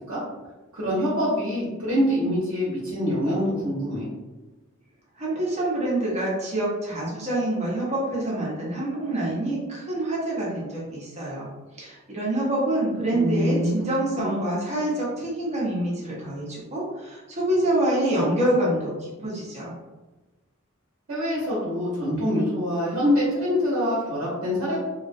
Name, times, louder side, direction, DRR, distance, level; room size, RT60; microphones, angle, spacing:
voice 1, 0.7-4.0 13.1-13.7 14.2-14.5 21.1-24.8, equal, 70° right, -8 dB, 0.8 m, -25 dB
voice 2, 5.2-11.5 11.8-18.9 19.2-19.7, right 1 dB, 35° right, -5 dB, 0.8 m, -26 dB
2.3 x 2.1 x 2.5 m, 1.2 s
head